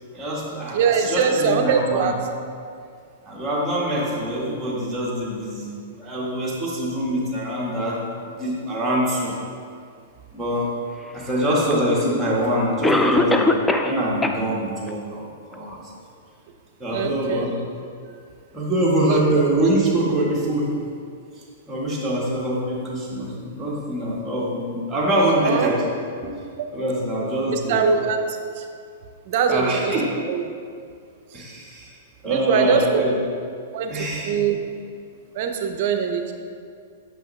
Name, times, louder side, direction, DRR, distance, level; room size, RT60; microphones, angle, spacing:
voice 1, 0.1-2.1 3.2-9.3 10.3-10.7 11.1-13.5 13.8-15.8 16.8-17.6 18.5-20.8 21.7-25.9 26.2-26.3 26.7-27.8 29.5-30.0 31.3-32.0 32.2-33.1 33.9-34.4, right 1 dB, 15° right, -6 dB, 1.4 m, -24 dB
voice 2, 0.7-2.2 16.9-17.5 19.0-19.2 25.2-25.7 27.5-28.6 29.3-29.9 30.3-30.4 32.2-33.0 33.7-33.9 34.3-34.6 35.3-36.3, right 6 dB, 55° right, 6 dB, 0.6 m, -22 dB
Cough, 11.7-11.8 12.8-14.0 14.2-14.3 14.9-15.0 15.5-15.6, left 2 dB, 5° left, 0.3 m, -19 dB
6.4 x 5.4 x 3.2 m, 2.3 s
hypercardioid pair, 130°, 0 cm